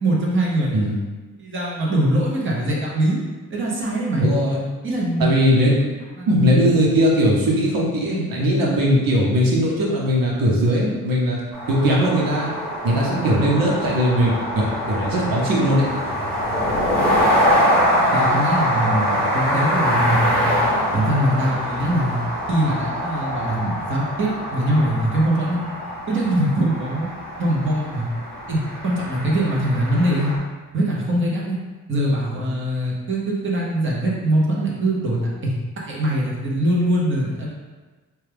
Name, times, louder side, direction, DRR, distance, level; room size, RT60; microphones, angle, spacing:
voice 1, 0.0-0.8 1.4-3.2 3.5-4.3 4.8-5.3 6.2-6.6 18.1-20.6 20.9-22.2 22.5-25.6 26.1-27.1 27.4-28.0 28.5-30.3 30.7-31.6 31.9-37.5, right 1 dB, 35° right, -4 dB, 0.9 m, -22 dB
voice 2, 4.2-4.6 5.2-5.7 6.3-11.4 11.7-12.5 12.8-15.9, equal, 85° right, -3 dB, 0.9 m, -19 dB
sound 1, 11.5-30.4, equal, 5° left, 0.9 m, -24 dB
4.6 x 2.3 x 3.4 m, 1.3 s
wide cardioid pair, 150°, 33 cm